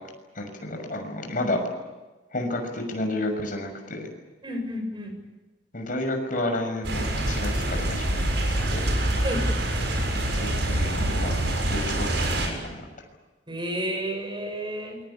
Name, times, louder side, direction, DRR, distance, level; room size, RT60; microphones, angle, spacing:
voice 1, 0.3-1.6 2.3-4.1 5.7-9.2 10.4-11.4 11.7-12.8, left 1 dB, 50° left, 4 dB, 6.3 m, -31 dB
voice 2, 4.4-5.1 9.2-9.4 13.5-15.0, equal, 25° right, 4 dB, 7.0 m, -31 dB
sound 1, 6.8-12.5, right 1 dB, 75° right, 7.3 m, -25 dB
28.0 x 22.5 x 8.7 m, 1.2 s
head